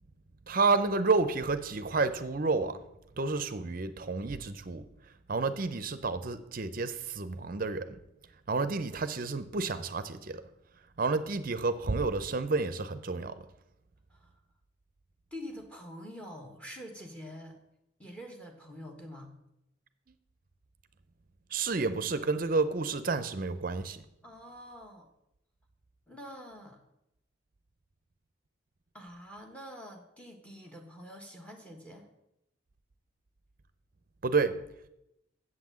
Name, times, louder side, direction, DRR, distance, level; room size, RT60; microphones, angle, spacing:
voice 1, 0.5-2.8 3.2-4.9 5.3-8.0 8.5-10.4 11.0-13.4 21.5-24.0 34.2-34.6, right 3 dB, 45° right, 11 dB, 0.6 m, -30 dB
voice 2, 15.3-17.6 18.0-19.3 24.2-25.1 26.1-26.8 28.9-32.1, equal, 5° left, 3 dB, 1.2 m, -46 dB
7.7 x 5.9 x 7.5 m, 0.86 s
head